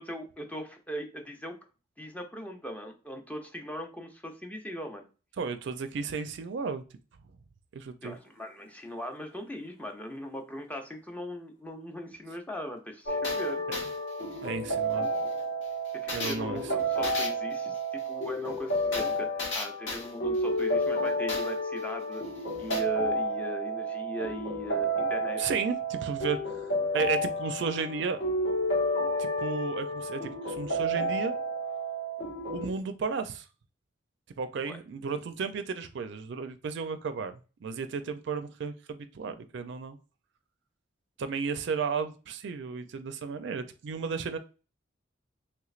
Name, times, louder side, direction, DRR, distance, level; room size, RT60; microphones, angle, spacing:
voice 1, 0.0-1.6 2.0-5.1 8.0-13.6 16.0-17.8 18.1-22.2 22.6-25.4 34.7-34.8, equal, 10° left, 4 dB, 0.5 m, -39 dB
voice 2, 5.4-6.8 7.7-8.2 13.7-13.8 14.4-15.1 16.1-16.6 25.4-28.2 29.2-31.4 32.5-33.4 34.4-40.0 41.2-44.4, right 5 dB, 65° right, 9 dB, 0.4 m, -33 dB
sound 1, 8.2-8.3 8.7-8.8 13.2-21.8 22.1-22.2 22.5-22.8, left 2 dB, 85° left, 1.2 m, -36 dB
sound 2, 13.1-32.7, equal, 60° left, 0.9 m, -31 dB
3.2 x 3.1 x 2.4 m, 0.34 s
head